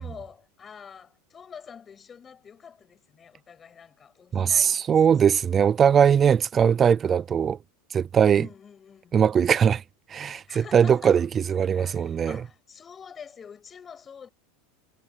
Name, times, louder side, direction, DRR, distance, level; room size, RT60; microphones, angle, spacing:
voice 1, 0.0-4.9 5.2-5.3 8.3-9.2 10.5-11.2 11.7-14.3, left 7 dB, 15° left, 6.1 m, -46 dB
voice 2, 4.3-7.6 7.9-8.5 9.1-9.8 10.1-12.4, right 7 dB, 20° right, 0.4 m, -20 dB
supercardioid pair, 170°, 0 cm